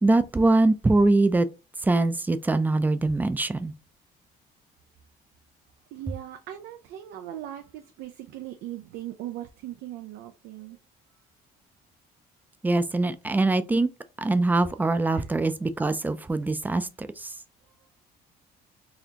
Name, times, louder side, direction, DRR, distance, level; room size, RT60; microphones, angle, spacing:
voice 1, 0.0-1.5 1.8-3.7 12.6-13.9 14.2-17.3, right 2 dB, 10° right, 0.4 m, -23 dB
voice 2, 5.9-10.8 15.1-15.3, right 13 dB, 85° right, 0.5 m, -39 dB
4.1 x 2.7 x 2.9 m
cardioid pair, 110°, 17 cm